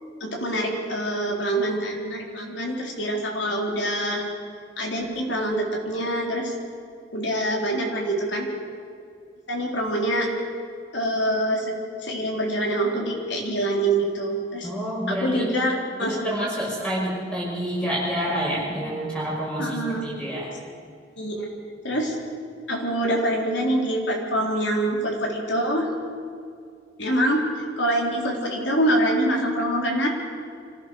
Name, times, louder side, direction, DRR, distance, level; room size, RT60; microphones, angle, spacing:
voice 1, 0.2-4.3 4.8-6.5 7.1-8.5 9.5-10.3 10.9-11.7 12.0-14.7 15.1-15.7 16.0-16.3 19.6-20.0 21.2-21.5 21.8-22.2 22.7-25.9 27.0-27.4 27.8-30.1, right 1 dB, 80° left, 0 dB, 3.9 m, -25 dB
voice 2, 14.6-15.5 16.0-20.5, equal, 5° left, -4 dB, 5.9 m, -28 dB
25.0 x 16.0 x 6.6 m, 2.3 s
head